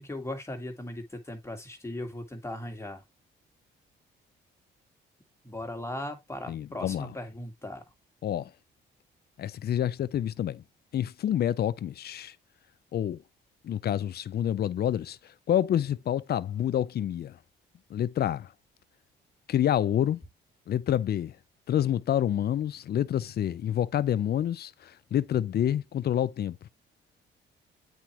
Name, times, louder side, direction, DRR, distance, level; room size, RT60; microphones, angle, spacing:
voice 1, 0.0-3.0 5.4-7.8, left 1 dB, 15° left, 1.8 m, -38 dB
voice 2, 6.5-7.1 8.2-8.5 9.4-10.6 10.9-12.3 12.9-13.2 13.6-15.2 15.5-17.3 17.9-18.5 19.5-20.2 20.7-21.3 21.7-26.6, left 10 dB, 55° left, 0.5 m, -28 dB
8.2 x 4.4 x 3.0 m
cardioid pair, 90°, 20 cm